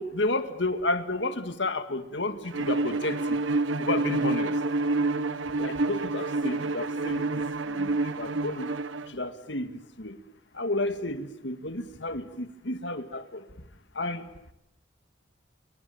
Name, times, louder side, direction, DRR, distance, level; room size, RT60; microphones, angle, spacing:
voice 1, 0.0-3.2 3.8-4.5 5.6-7.3 7.7-7.9 8.2-8.7 9.1-9.7 10.0-10.2 10.5-13.4 14.0-14.3, left 2 dB, 65° left, 1.9 m, -31 dB
Bowed string instrument, 2.5-9.1, right 2 dB, 85° right, 1.3 m, -28 dB
28.0 x 24.0 x 7.2 m
head